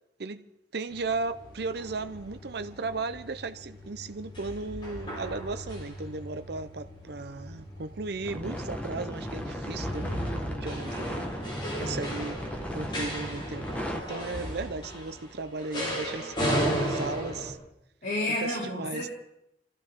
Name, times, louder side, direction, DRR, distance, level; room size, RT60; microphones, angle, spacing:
voice 1, 0.7-11.3 11.8-12.4 12.7-17.6 18.4-19.1, right 3 dB, 65° right, 0.7 m, -36 dB
sound 1, 0.9-17.5, equal, 30° left, 4.6 m, -36 dB
sound 2, 8.2-14.0, equal, 10° left, 1.5 m, -36 dB
voice 2, 18.0-19.1, left 1 dB, 50° left, 4.3 m, -31 dB
26.0 x 14.0 x 3.7 m
head